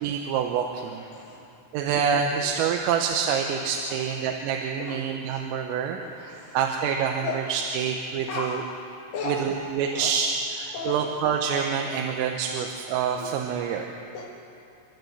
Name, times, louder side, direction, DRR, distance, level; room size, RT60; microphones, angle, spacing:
voice 1, 0.0-1.0 1.7-8.6 9.3-10.3 10.6-13.9, right 7 dB, 90° right, 2 dB, 3.7 m, -27 dB
voice 2, 0.8-1.6 2.3-2.4 3.5-4.2 4.8-5.4 6.0-6.6 7.2-7.4 8.3-8.6 9.1-9.6 9.9-10.1 10.7-11.1 13.2-13.3 13.6-13.8 14.1-14.2, left 4 dB, 60° left, -5 dB, 3.8 m, -36 dB
29.0 x 12.0 x 8.0 m, 2.7 s
omnidirectional pair, 5.8 m